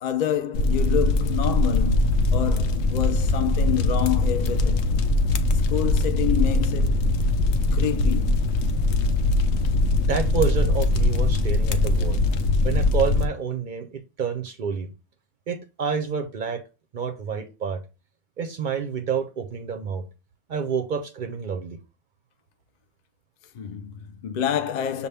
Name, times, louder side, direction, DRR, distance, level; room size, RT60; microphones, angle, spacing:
voice 1, 0.0-4.9 5.5-7.1 7.7-8.4 23.5-25.1, left 10 dB, 50° left, 0.5 m, -28 dB
sound 1, 0.5-13.3, left 2 dB, 80° left, 0.9 m, -21 dB
voice 2, 9.9-12.2 12.6-14.9 15.5-16.6 16.9-17.8 18.4-20.0 20.5-21.8, right 6 dB, 55° right, 0.6 m, -28 dB
6.7 x 2.3 x 3.3 m
omnidirectional pair, 1.1 m